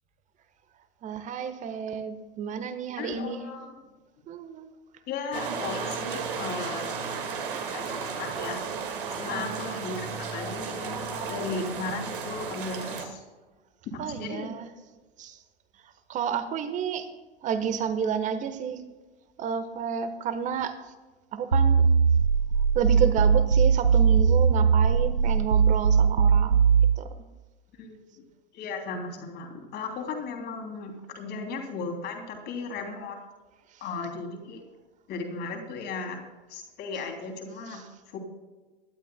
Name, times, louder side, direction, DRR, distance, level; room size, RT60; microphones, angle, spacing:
voice 1, 1.0-3.4 4.3-4.8 9.3-9.8 14.0-14.7 15.2-15.4 15.7-17.1 17.4-18.8 19.4-20.9 21.3-21.8 22.7-26.6 27.0-27.1 33.7-33.8 37.7-37.9, right 7 dB, 25° right, 11 dB, 1.2 m, -31 dB
voice 2, 3.0-3.7 5.1-7.0 7.7-8.7 9.1-13.2 13.8-14.5 27.7-28.2 28.5-33.2 33.8-34.6 35.1-36.2 36.5-37.8 38.1-38.2, left 4 dB, 35° left, 3 dB, 3.1 m, -36 dB
sound 1, 5.3-13.1, right 5 dB, 60° right, 2.0 m, -34 dB
sound 2, 21.5-27.0, right 6 dB, 90° right, 0.5 m, -20 dB
22.5 x 12.0 x 2.2 m, 1.2 s
figure-of-eight pair, 90°, 29 cm